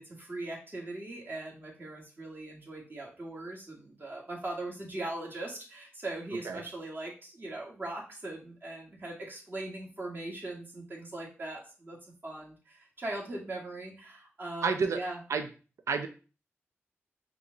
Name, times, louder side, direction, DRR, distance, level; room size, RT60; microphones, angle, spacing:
voice 1, 0.0-12.0 12.2-15.2, right 2 dB, 40° right, -3 dB, 1.9 m, -40 dB
voice 2, 14.6-15.0 15.3-15.5 15.9-16.1, right 5 dB, 70° right, 7 dB, 0.5 m, -29 dB
4.7 x 2.4 x 3.8 m, 0.35 s
cardioid pair, 50°, 5 cm